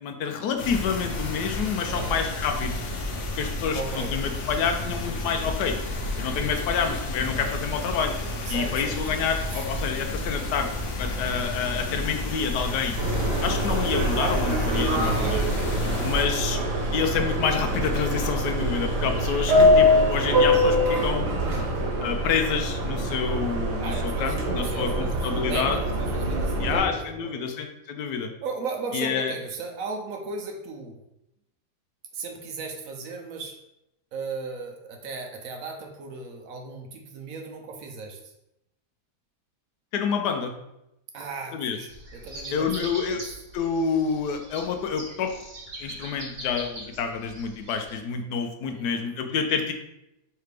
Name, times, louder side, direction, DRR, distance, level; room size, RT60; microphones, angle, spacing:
voice 1, 0.0-2.8 3.3-5.8 6.2-8.1 8.5-10.7 11.0-13.0 13.4-15.5 16.0-16.6 16.9-21.3 22.0-25.8 26.6-28.3 28.9-29.3 39.9-40.5 41.5-41.8 42.5-43.2 43.5-45.3 45.8-49.7, left 6 dB, 80° left, 5 dB, 1.1 m, -28 dB
sound 1, 0.6-16.2, left 2 dB, 60° left, 0.8 m, -31 dB
voice 2, 1.9-2.3 3.7-4.2 8.5-9.0 9.5-9.6 15.0-15.4 21.4-21.8 23.8-27.5 28.4-31.0 32.1-33.6 34.1-38.3 41.1-43.2 48.7-49.1, right 4 dB, 65° right, 3 dB, 1.0 m, -36 dB
Subway metro underground, 13.0-26.8, equal, 85° right, 1.5 m, -24 dB
sound 2, 41.9-47.9, right 1 dB, 35° right, 1.0 m, -42 dB
4.8 x 3.3 x 3.3 m, 0.87 s
omnidirectional pair, 1.8 m